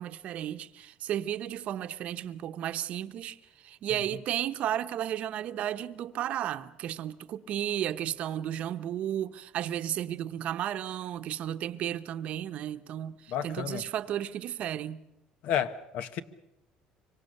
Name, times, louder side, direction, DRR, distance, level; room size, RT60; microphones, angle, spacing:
voice 1, 0.0-15.0, right 11 dB, 55° right, 0.9 m, -33 dB
voice 2, 13.3-13.8 15.4-16.2, left 9 dB, 65° left, 1.2 m, -31 dB
25.5 x 24.5 x 6.6 m
cardioid pair, 140°, 3 cm